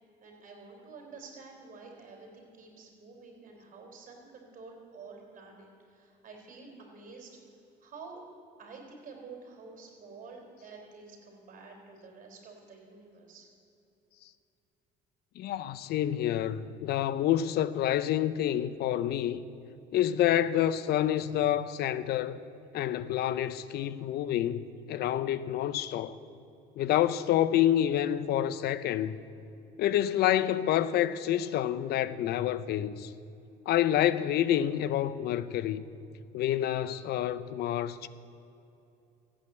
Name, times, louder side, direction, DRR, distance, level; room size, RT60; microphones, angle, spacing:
voice 1, 0.2-7.4 7.8-8.2 8.6-13.5, right 4 dB, 50° right, 4.1 m, -49 dB
voice 2, 15.4-19.4 19.9-22.4 22.7-26.2 26.8-29.2 29.8-33.1 33.7-35.8 36.3-38.1, left 11 dB, 70° left, 0.7 m, -28 dB
15.0 x 8.8 x 8.2 m
cardioid pair, 110°, 17 cm